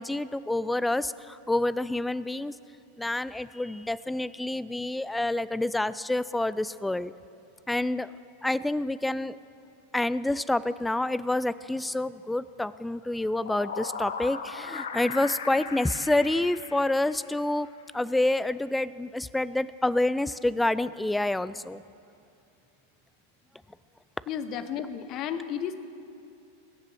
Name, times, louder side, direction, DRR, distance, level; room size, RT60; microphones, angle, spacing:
voice 1, 0.0-2.5 3.0-7.1 7.7-8.1 8.4-9.4 9.9-17.7 17.9-21.8, left 2 dB, 5° left, 17 dB, 0.3 m, -28 dB
sound 1, 13.1-17.6, left 5 dB, 65° left, 0.8 m, -38 dB
voice 2, 24.3-25.7, left 8 dB, 35° left, 11 dB, 0.8 m, -33 dB
21.5 x 7.3 x 6.5 m, 2.5 s
figure-of-eight pair, 90°, 0 cm